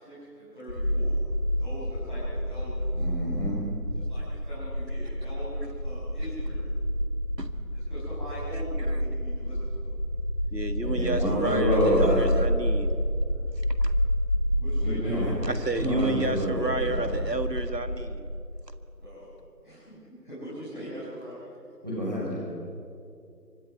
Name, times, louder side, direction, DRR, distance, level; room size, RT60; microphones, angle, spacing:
voice 1, 0.0-1.2 1.6-3.0 3.9-6.7 7.7-9.8 14.6-15.3 19.0-19.3 19.6-21.4, equal, 30° left, -11 dB, 6.0 m, -42 dB
sound 1, 0.7-18.5, equal, 70° left, 6.2 m, -29 dB
voice 2, 2.9-3.6 10.8-12.2 14.8-15.3 15.8-17.1 21.8-22.4, equal, 25° right, -6 dB, 6.0 m, -28 dB
voice 3, 10.5-12.9 13.8-13.9 15.4-18.3, right 2 dB, 75° right, 10 dB, 1.7 m, -31 dB
24.5 x 19.0 x 5.8 m, 2.4 s
figure-of-eight pair, 175°, 49 cm